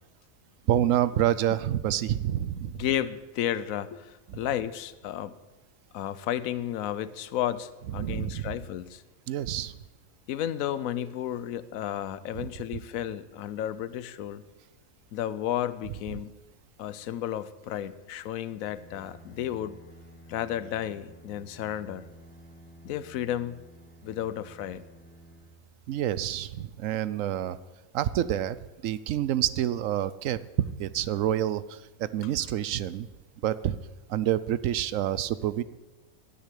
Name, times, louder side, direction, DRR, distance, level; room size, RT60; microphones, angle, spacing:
voice 1, 0.7-2.8 8.0-8.5 9.3-9.7 12.4-12.5 25.9-27.6 27.9-28.6 28.8-33.1 33.4-33.8 34.1-35.6, right 11 dB, 70° right, 16 dB, 1.0 m, -28 dB
voice 2, 2.7-5.4 5.9-9.0 10.3-14.4 15.1-16.4 16.8-19.8 20.3-22.1 22.8-23.6 24.0-24.8, left 11 dB, 75° left, 16 dB, 1.1 m, -32 dB
Bowed string instrument, 18.4-26.4, right 1 dB, 10° left, 1.3 m, -52 dB
12.0 x 9.8 x 8.4 m, 1.1 s
omnidirectional pair, 1.5 m